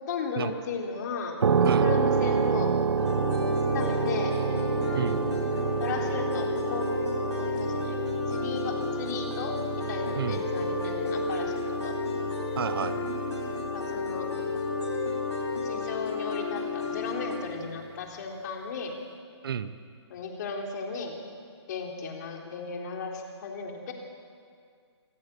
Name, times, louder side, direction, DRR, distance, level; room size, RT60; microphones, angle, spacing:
voice 1, 0.1-2.7 3.7-4.4 5.5-6.9 7.4-11.9 13.7-14.3 15.5-18.9 20.1-21.1 21.7-23.9, left 5 dB, 40° left, 1 dB, 3.7 m, -35 dB
sound 1, 1.4-16.1, right 6 dB, 85° right, 0.5 m, -30 dB
sound 2, 3.0-17.4, left 4 dB, 90° left, 7.3 m, -32 dB
voice 2, 4.9-5.3 10.1-10.5 12.6-13.0 19.4-19.7, right 8 dB, 55° right, 13 dB, 1.1 m, -31 dB
26.0 x 15.0 x 8.5 m, 2.2 s
hypercardioid pair, 155°, 14 cm